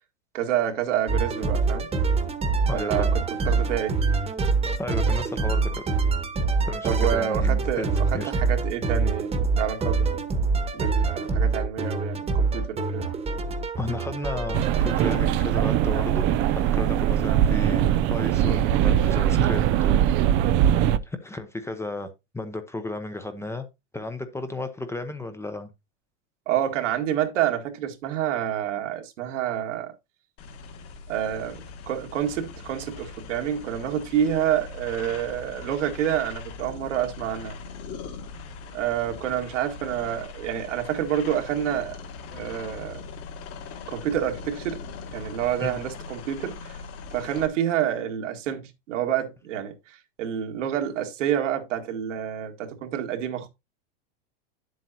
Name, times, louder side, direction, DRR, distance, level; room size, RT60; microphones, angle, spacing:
voice 1, 0.3-1.9 2.7-4.0 6.8-10.2 10.7-13.1 26.5-29.9 31.1-37.6 38.7-42.0 42.3-43.0 43.9-44.8 45.1-46.8 47.1-53.5, right 10 dB, 80° right, 1.9 m, -28 dB
sound 1, 1.1-15.2, right 4 dB, 15° right, 1.2 m, -25 dB
voice 2, 2.7-3.1 4.8-5.9 6.7-8.3 13.8-20.1 21.0-22.1 22.3-23.7 23.9-25.7 45.6-45.8, left 2 dB, 5° left, 0.7 m, -34 dB
sound 2, 14.5-21.0, right 11 dB, 35° right, 0.5 m, -21 dB
sound 3, 30.4-47.5, left 4 dB, 40° left, 1.8 m, -41 dB
9.8 x 7.7 x 2.7 m
supercardioid pair, 125°, 36 cm